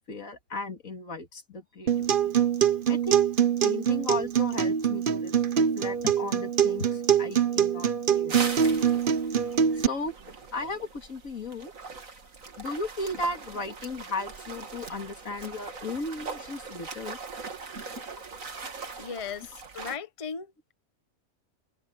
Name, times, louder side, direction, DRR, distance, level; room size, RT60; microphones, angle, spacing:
voice 1, 0.1-2.4 2.9-3.3 3.6-9.0 9.8-10.1 10.5-11.7 12.6-17.2, left 2 dB, 80° left, 2.8 m, -36 dB
Acoustic guitar, 1.9-9.9, right 8 dB, 45° right, 0.9 m, -24 dB
sound 1, 8.3-20.0, right 4 dB, 75° right, 2.5 m, -40 dB
voice 2, 19.0-20.7, left 6 dB, 25° left, 1.0 m, -37 dB
omnidirectional pair, 1.4 m